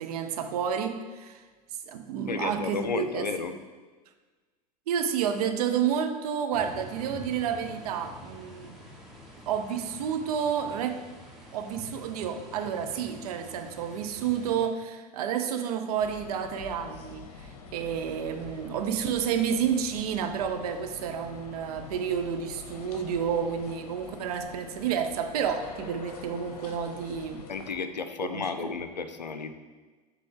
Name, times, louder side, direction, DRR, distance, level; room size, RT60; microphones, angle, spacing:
voice 1, 0.0-1.4 1.9-3.3 4.9-8.8 9.5-11.0 11.5-27.4 28.3-28.7, right 8 dB, 65° right, 7 dB, 0.7 m, -30 dB
voice 2, 2.3-3.5 27.5-29.5, left 5 dB, 90° left, 9 dB, 0.5 m, -32 dB
sound 1, 6.5-14.7, equal, ahead, 1.3 m, -47 dB
sound 2, 16.0-27.7, left 4 dB, 60° left, 0.8 m, -46 dB
7.5 x 3.4 x 3.7 m, 1.3 s
figure-of-eight pair, 80°, 21 cm